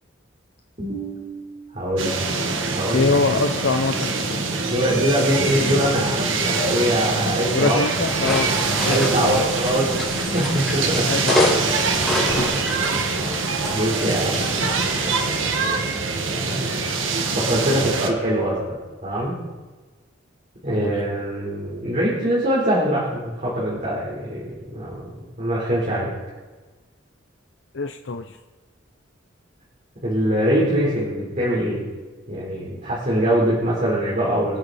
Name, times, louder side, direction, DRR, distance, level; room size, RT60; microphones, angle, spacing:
voice 1, 0.8-1.4 1.7-2.2 2.7-3.1 4.7-7.8 8.9-9.9 10.3-11.1 12.3-12.5 13.7-14.4 16.3-17.0 17.3-18.8 19.0-19.3 20.6-25.0 25.4-26.1 30.0-31.8 32.3-34.6, equal, 40° right, -7 dB, 4.0 m, -23 dB
sound 1, 2.0-18.1, right 3 dB, 80° right, 1.7 m, -24 dB
voice 2, 2.9-4.4 7.5-8.5 8.8-9.5 11.0-11.7 12.4-12.5 17.7-17.8 20.8-21.0 27.7-28.2, left 3 dB, 65° left, 5 dB, 0.7 m, -24 dB
sound 2, 8.1-15.1, left 1 dB, 5° left, 5.1 m, -28 dB
26.5 x 8.8 x 4.2 m, 1.3 s
head